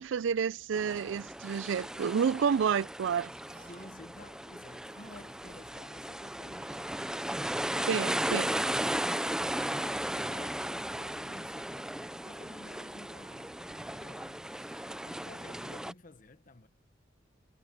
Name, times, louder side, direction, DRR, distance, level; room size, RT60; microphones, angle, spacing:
voice 1, 0.0-3.3 7.9-8.5, right 7 dB, 70° right, 0.4 m, -29 dB
sound 1, 0.7-15.9, right 1 dB, 5° right, 0.4 m, -36 dB
sound 2, 3.3-4.1 4.8-5.9 6.4-7.8 8.2-9.0 9.5-10.2 10.7-11.8, right 4 dB, 50° right, 5.4 m, -62 dB
voice 2, 3.5-13.6 13.9-16.7, left 2 dB, 45° left, 1.2 m, -53 dB
Wind instrument woodwind instrument, 7.7-15.2, right 2 dB, 20° right, 1.3 m, -56 dB
head